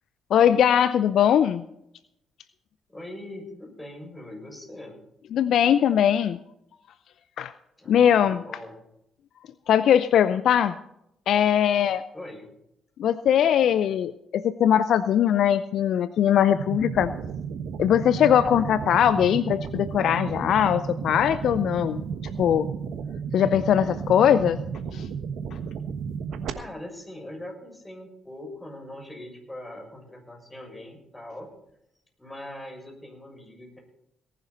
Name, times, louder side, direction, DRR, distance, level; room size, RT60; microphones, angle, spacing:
voice 1, 0.3-1.6 5.3-6.4 7.4-7.5 7.9-8.4 9.7-10.7 11.3-12.0 13.0-17.1 17.8-22.0 22.4-22.7 23.3-24.6 24.9-25.1, left 9 dB, 60° left, 15 dB, 0.5 m, -21 dB
voice 2, 2.9-5.0 7.8-8.8 12.1-12.5 26.5-31.5 32.2-33.8, left 1 dB, 15° left, 2 dB, 6.8 m, -41 dB
sound 1, 16.5-26.5, right 6 dB, 65° right, 1.3 m, -33 dB
18.5 x 11.0 x 4.2 m, 0.79 s
hypercardioid pair, 45°, 0 cm